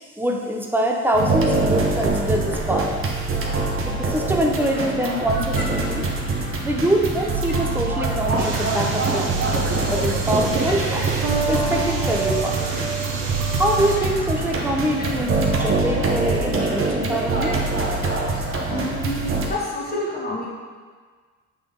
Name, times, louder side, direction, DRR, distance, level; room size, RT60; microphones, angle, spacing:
voice 1, 0.2-2.9 3.9-6.1 6.6-9.4 9.9-11.1 11.5-12.6 13.6-17.6, right 1 dB, 5° right, 0 dB, 0.9 m, -24 dB
sound 1, 1.1-19.5, right 3 dB, 45° right, 1.0 m, -24 dB
sound 2, 8.4-14.0, right 5 dB, 80° right, 1.1 m, -27 dB
voice 2, 18.7-19.2 19.5-20.5, left 1 dB, 30° left, -4 dB, 1.7 m, -28 dB
7.3 x 3.9 x 3.9 m, 1.5 s
cardioid pair, 90°, 30 cm